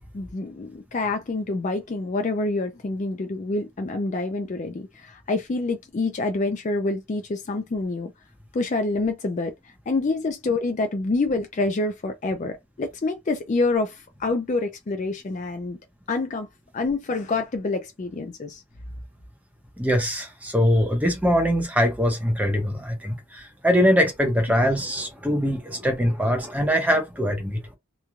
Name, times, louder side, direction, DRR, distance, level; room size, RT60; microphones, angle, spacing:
voice 1, 0.1-8.1 8.5-15.8 16.1-16.5 16.7-18.6, left 3 dB, 35° left, 0.3 m, -27 dB
voice 2, 19.8-27.6, equal, 5° right, 0.7 m, -22 dB
3.0 x 2.2 x 2.4 m
head